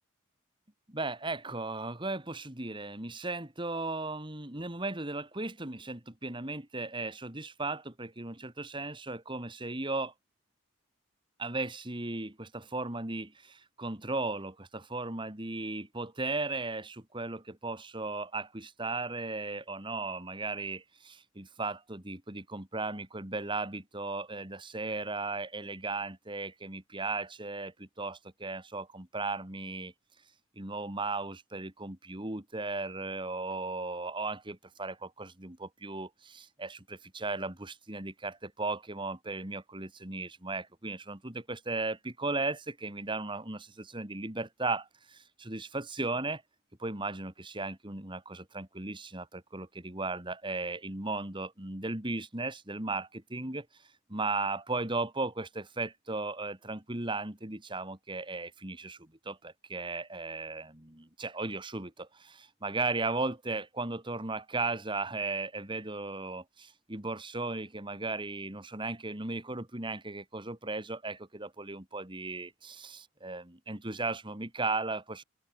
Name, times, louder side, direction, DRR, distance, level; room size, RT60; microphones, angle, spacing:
voice 1, 0.9-10.1 11.4-29.9 30.6-46.4 46.8-53.7 54.1-75.2, right 3 dB, 25° right, 2.4 m, -36 dB
head